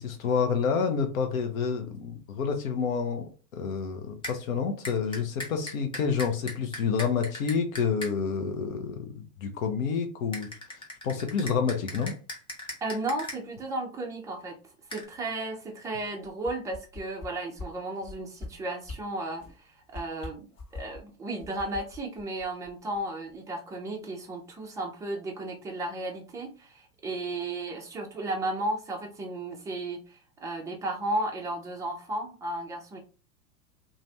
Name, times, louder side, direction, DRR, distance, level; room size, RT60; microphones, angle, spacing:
voice 1, 0.0-10.5 11.0-12.1, left 6 dB, 65° left, 0.9 m, -29 dB
sound 1, 4.2-4.4 4.8-8.1 10.3-13.4 14.9-15.0, left 1 dB, 10° left, 0.8 m, -38 dB
voice 2, 12.8-14.6 14.9-20.5 20.7-33.0, right 2 dB, 10° right, 0.4 m, -34 dB
sound 2, 16.2-17.3 17.6-17.7 18.0-18.5 18.8-19.0 19.4-19.6 19.9-21.0 21.4-23.0 23.3-23.4, left 3 dB, 30° left, 1.2 m, -41 dB
2.6 x 2.5 x 3.2 m
figure-of-eight pair, 95°, 45 cm